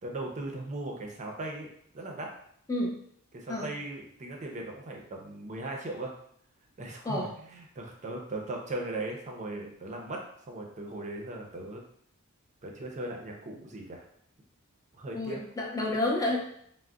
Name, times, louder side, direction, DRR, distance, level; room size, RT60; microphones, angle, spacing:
voice 1, 0.0-1.7 1.9-2.3 3.3-6.1 6.8-11.8 12.6-14.0 14.9-15.4, right 2 dB, 35° right, 0 dB, 0.5 m, -38 dB
voice 2, 15.1-16.4, left 1 dB, 15° left, -2 dB, 0.5 m, -29 dB
3.6 x 2.0 x 2.3 m, 0.67 s
head